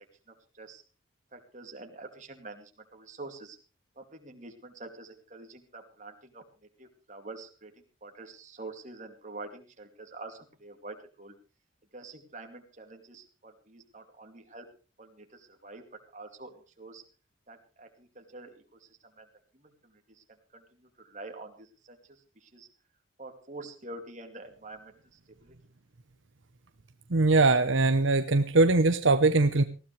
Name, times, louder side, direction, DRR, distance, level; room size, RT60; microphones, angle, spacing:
voice 1, 1.3-3.6 4.0-6.4 6.8-7.7 8.0-11.3 11.9-14.7 15.0-15.8 16.1-17.0 17.5-18.9 19.2-19.3 19.5-20.2 20.5-20.6 21.0-22.0 22.4-22.7 23.2-24.9 25.4-25.5, right 2 dB, 35° right, 4 dB, 2.6 m, -46 dB
voice 2, 27.1-29.6, right 3 dB, 70° right, 9 dB, 0.9 m, -22 dB
19.5 x 16.0 x 3.3 m, 0.34 s
head